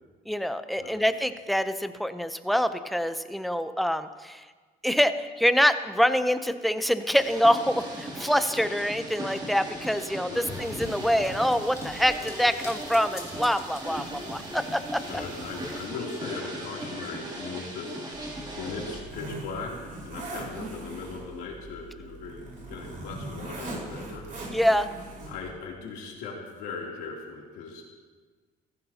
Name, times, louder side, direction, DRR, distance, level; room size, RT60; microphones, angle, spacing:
voice 1, 0.3-4.4 4.8-15.0 24.5-24.9, equal, ahead, 10 dB, 0.6 m, -25 dB
sound 1, 7.1-19.0, right 1 dB, 25° right, 2.8 m, -38 dB
sound 2, 10.4-15.9, left 2 dB, 15° left, 2.1 m, -44 dB
voice 2, 15.1-18.1 18.6-24.6 25.3-27.8, left 4 dB, 90° left, -2 dB, 3.0 m, -39 dB
Zipper (clothing), 18.1-25.5, right 2 dB, 50° right, 4.6 m, -40 dB
15.5 x 15.0 x 2.9 m, 1.4 s
cardioid pair, 110°, 17 cm